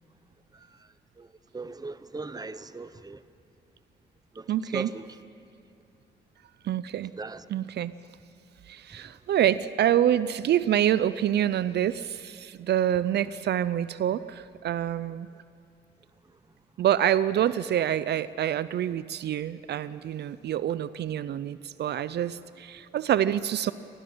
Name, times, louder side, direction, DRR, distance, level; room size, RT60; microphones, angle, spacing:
voice 1, 1.5-3.2 4.4-4.5 4.7-5.0 7.2-7.4, right 3 dB, 20° right, 0.9 m, -37 dB
voice 2, 4.5-4.9 6.6-7.1 7.5-7.9 8.7-15.3 16.8-23.7, right 11 dB, 70° right, 0.5 m, -26 dB
29.5 x 12.5 x 7.8 m
cardioid pair, 75°, 18 cm